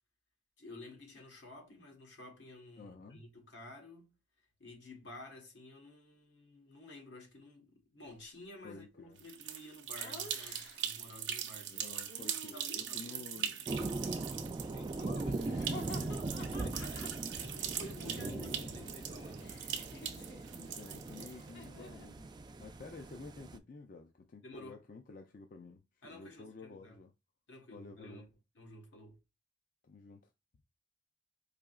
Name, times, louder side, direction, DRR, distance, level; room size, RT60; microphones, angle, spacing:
voice 1, 0.6-4.1 4.6-11.9 12.5-19.6 24.4-24.8 26.0-27.0 27.5-28.3 28.5-29.2, left 2 dB, 80° left, 1.3 m, -53 dB
voice 2, 2.8-3.2 8.6-9.2 11.7-13.8 17.9-19.0 20.5-22.3 22.6-27.1 27.7-28.3 29.8-30.2, left 3 dB, 50° left, 0.4 m, -51 dB
sound 1, 9.2-21.6, right 9 dB, 80° right, 0.6 m, -41 dB
Laughter, 10.0-11.0 12.1-13.1 14.9-18.8 19.0-22.1, left 2 dB, 65° left, 0.9 m, -52 dB
sound 2, 13.7-23.6, right 2 dB, 25° right, 0.3 m, -40 dB
4.9 x 2.8 x 2.4 m
head